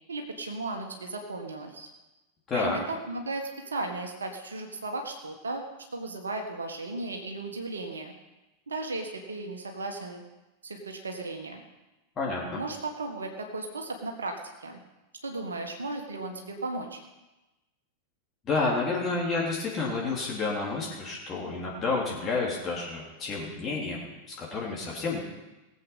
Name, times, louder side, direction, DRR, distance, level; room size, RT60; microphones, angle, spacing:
voice 1, 0.1-1.9 2.5-5.6 5.9-8.1 8.7-10.2 10.6-11.6 12.6-14.8 15.2-17.0, right 2 dB, 75° right, 3 dB, 1.6 m, -35 dB
voice 2, 12.2-12.6 18.4-25.2, left 3 dB, 25° left, -4 dB, 3.3 m, -30 dB
19.0 x 7.9 x 5.6 m, 1.0 s
figure-of-eight pair, 90°, 0 cm